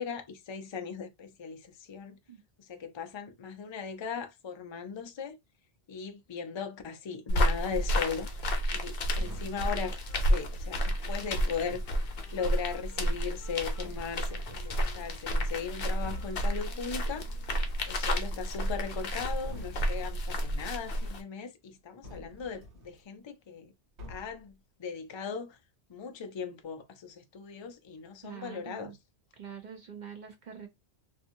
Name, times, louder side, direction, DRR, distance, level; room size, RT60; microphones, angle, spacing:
voice 1, 0.0-2.2 2.6-5.4 5.9-8.3 8.7-10.0 10.3-11.8 12.3-17.3 17.9-23.7 24.1-24.5 24.8-25.6 25.9-28.9, left 6 dB, 45° left, 0.3 m, -38 dB
sound 1, 7.3-21.2, equal, 65° left, 0.8 m, -31 dB
sound 2, 9.1-9.7 11.4-12.0 13.3-13.4 13.8-15.0 15.5-15.7 16.0-16.5 18.0-18.7 19.0-20.1 22.0-23.0 24.0-24.5, left 1 dB, 85° right, 1.2 m, -47 dB
Wind instrument woodwind instrument, 9.2-18.0, right 1 dB, 30° right, 1.3 m, -58 dB
voice 2, 28.2-28.9 29.3-30.7, right 8 dB, 55° right, 0.6 m, -45 dB
2.7 x 2.4 x 2.6 m
omnidirectional pair, 1.1 m